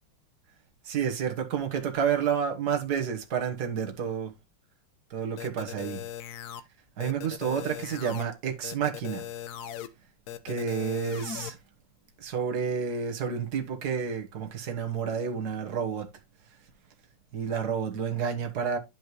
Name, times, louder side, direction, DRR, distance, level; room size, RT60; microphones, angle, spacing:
voice 1, 0.8-4.3 5.1-6.1 7.0-9.3 10.4-11.6 12.2-16.1 17.3-18.8, right 7 dB, 50° right, 1.9 m, -30 dB
sound 1, 5.4-6.6 7.0-8.2 8.6-9.9 10.3-11.5, left 10 dB, 65° left, 1.0 m, -39 dB
11.0 x 5.1 x 3.1 m
omnidirectional pair, 2.4 m